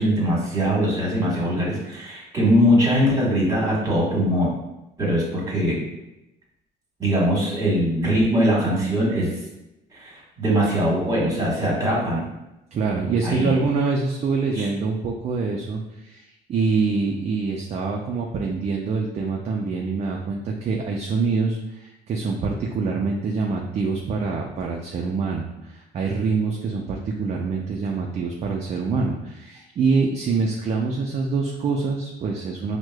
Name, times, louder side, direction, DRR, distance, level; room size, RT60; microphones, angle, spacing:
voice 1, 0.0-4.5 5.0-5.8 7.0-9.3 9.9-12.2 13.2-13.5 14.5-14.7, equal, 20° right, -4 dB, 1.3 m, -21 dB
voice 2, 12.7-32.8, right 4 dB, 40° right, 0 dB, 0.4 m, -25 dB
4.6 x 2.1 x 2.2 m, 0.92 s
cardioid pair, 110°, 17 cm